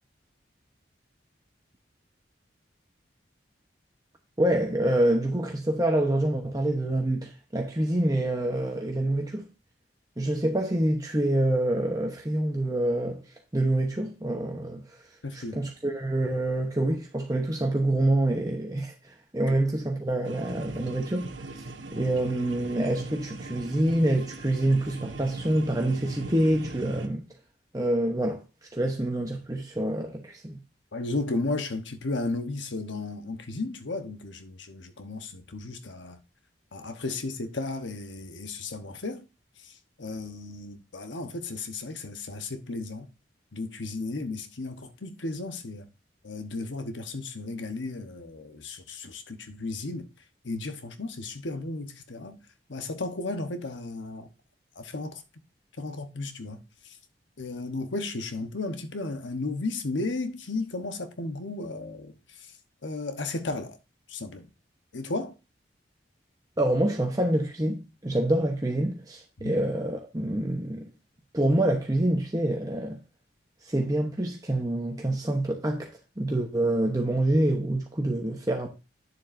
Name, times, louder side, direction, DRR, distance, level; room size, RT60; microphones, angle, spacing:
voice 1, 4.4-9.5 10.2-13.2 13.5-15.0 15.3-21.6 21.9-27.2 27.7-28.4 28.7-30.6 66.6-70.9 71.3-73.0 73.6-75.9 76.2-78.7, right 1 dB, 20° right, 0.9 m, -26 dB
voice 2, 15.2-15.6 30.9-36.2 36.7-39.3 39.6-43.1 43.5-45.9 46.2-50.1 50.4-52.4 52.7-54.3 54.8-55.2 55.8-56.6 56.8-57.0 57.4-62.1 62.8-63.8 64.1-64.5 64.9-65.3 69.4-69.6, left 2 dB, 80° left, 1.0 m, -34 dB
sound 1, 20.2-27.1, right 2 dB, 80° right, 1.0 m, -39 dB
9.5 x 7.2 x 2.6 m
head